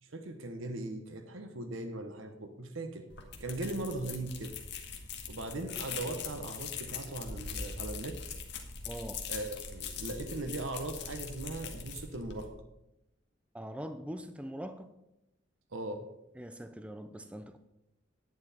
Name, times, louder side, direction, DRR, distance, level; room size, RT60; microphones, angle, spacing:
voice 1, 0.0-3.1 3.4-4.6 5.3-8.2 9.3-12.5 15.7-16.0, right 2 dB, 80° right, 7 dB, 1.1 m, -39 dB
sound 1, 3.1-12.5, left 5 dB, 60° left, 1.5 m, -42 dB
voice 2, 8.9-9.2 13.5-14.9 16.4-17.6, equal, 5° right, 8 dB, 0.5 m, -42 dB
11.0 x 9.4 x 4.3 m, 0.89 s
head